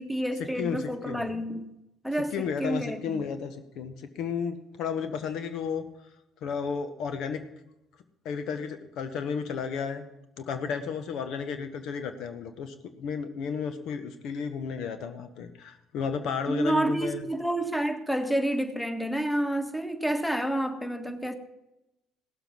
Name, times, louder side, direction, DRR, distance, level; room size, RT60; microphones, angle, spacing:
voice 1, 0.0-1.7 2.0-3.0 16.5-21.3, right 1 dB, 5° left, 1.7 m, -29 dB
voice 2, 2.3-5.8 6.4-7.4 8.2-10.0 10.4-17.2, left 6 dB, 65° left, 1.1 m, -33 dB
17.0 x 7.0 x 6.0 m
hypercardioid pair, 60°, 0 cm